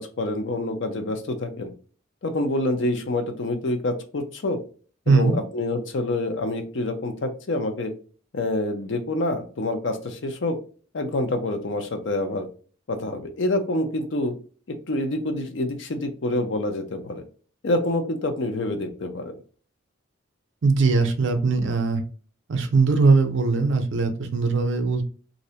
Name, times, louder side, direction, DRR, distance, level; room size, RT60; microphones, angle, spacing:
voice 1, 0.0-1.7 2.2-4.6 5.1-7.9 8.3-10.6 10.9-12.5 12.9-14.3 14.7-17.2 17.6-19.3, left 2 dB, 60° left, 6 dB, 0.5 m, -27 dB
voice 2, 5.1-5.4 20.6-22.0 22.5-25.0, right 4 dB, 60° right, 6 dB, 0.5 m, -20 dB
2.6 x 2.1 x 2.7 m, 0.39 s
head